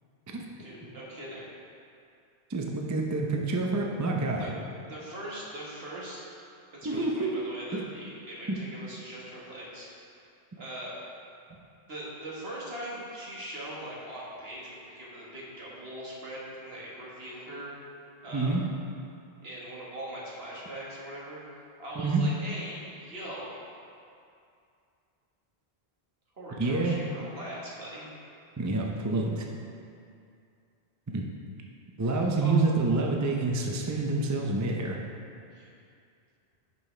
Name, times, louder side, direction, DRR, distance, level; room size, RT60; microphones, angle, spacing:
voice 1, 0.6-1.5 4.4-4.5 4.9-6.3 6.8-9.9 10.1-10.2 10.6-11.0 11.9-17.7 18.2-18.5 19.4-21.4 21.8-23.6 26.4-28.1 32.4-32.5 35.5-35.7, right 1 dB, 65° right, -6 dB, 1.8 m, -41 dB
voice 2, 2.5-4.5 6.8-7.5 7.7-7.9 8.5-8.6 18.3-18.7 22.0-22.2 26.6-27.0 28.6-29.5 31.1-31.3 32.0-35.0, right 3 dB, 25° right, 0 dB, 0.4 m, -27 dB
10.5 x 5.5 x 3.3 m, 2.4 s
omnidirectional pair, 1.1 m